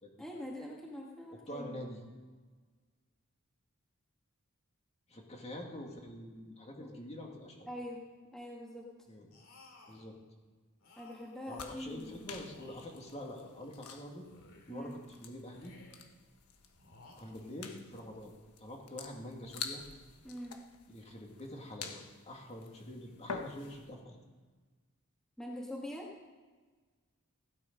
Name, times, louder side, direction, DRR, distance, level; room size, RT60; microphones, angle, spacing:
voice 1, 0.2-1.8 6.8-6.9 7.7-8.0 8.3-8.9 11.0-12.3 14.7-14.9 20.2-20.6 25.4-26.1, left 1 dB, ahead, -3 dB, 2.0 m, -43 dB
voice 2, 1.5-2.0 5.1-7.7 9.1-9.3 9.9-10.1 11.5-14.2 14.7-15.7 17.2-18.3 18.6-19.8 20.9-22.0 22.3-24.2, left 1 dB, 30° left, 0 dB, 2.2 m, -46 dB
sound 1, 9.3-10.1 10.8-11.9 12.4-13.8 14.2-15.0 15.5-16.2 16.7-17.8, left 2 dB, 65° left, 2.8 m, -60 dB
sound 2, 11.5-23.9, left 5 dB, 90° left, 1.3 m, -49 dB
16.0 x 11.5 x 5.3 m, 1.4 s
head